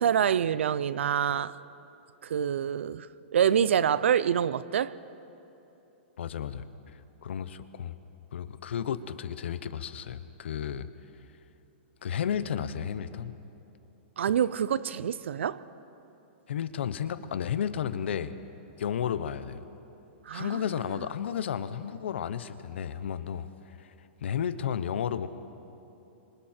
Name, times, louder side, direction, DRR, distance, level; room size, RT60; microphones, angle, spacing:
voice 1, 0.0-1.6 2.2-4.9 14.2-15.6 20.3-20.6, right 8 dB, 85° right, 0.7 m, -26 dB
voice 2, 6.2-6.7 7.2-7.9 8.3-10.9 12.0-13.3 16.5-18.3 18.8-19.6 20.3-23.9 24.2-25.3, left 8 dB, 70° left, 1.0 m, -32 dB
27.5 x 26.0 x 4.5 m
hypercardioid pair, 175°, 6 cm